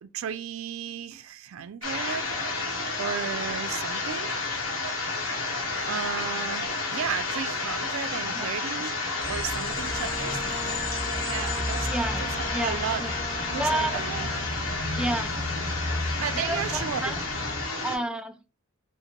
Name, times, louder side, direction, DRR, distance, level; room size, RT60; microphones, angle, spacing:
voice 1, 0.0-2.3 3.0-4.3 5.8-8.9 9.2-10.4 10.6-10.8 11.2-11.9 12.2-12.3 12.6-13.0 13.4-14.3 16.2-17.1, right 8 dB, 90° right, 0.4 m, -34 dB
sound 1, 1.8-18.0, left 3 dB, 80° left, 1.3 m, -31 dB
sound 2, 9.2-17.7, left 1 dB, 60° left, 2.3 m, -34 dB
Bowed string instrument, 9.7-14.5, left 1 dB, 40° left, 1.9 m, -40 dB
voice 2, 11.9-13.1 13.5-14.0 14.9-15.4 16.3-17.2 17.8-18.4, right 1 dB, 5° right, 0.3 m, -30 dB
5.4 x 2.1 x 2.9 m
head